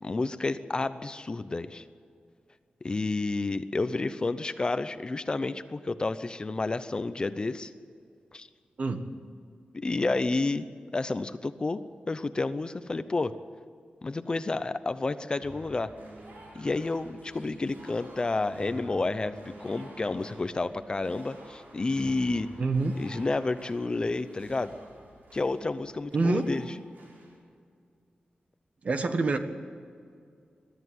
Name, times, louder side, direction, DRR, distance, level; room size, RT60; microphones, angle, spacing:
voice 1, 0.0-1.8 2.8-7.7 8.3-8.5 9.7-10.7 10.9-11.8 12.1-13.3 14.0-15.9 16.5-22.5 23.0-24.7 25.3-26.7, left 3 dB, 30° left, 12 dB, 0.7 m, -30 dB
voice 2, 8.8-9.1 22.6-22.9 26.1-26.4 28.8-29.4, right 3 dB, 50° right, 7 dB, 1.5 m, -26 dB
sound 1, 15.4-27.4, right 1 dB, 80° right, 5.3 m, -49 dB
22.5 x 13.0 x 9.4 m, 2.2 s
wide cardioid pair, 160°, 3 cm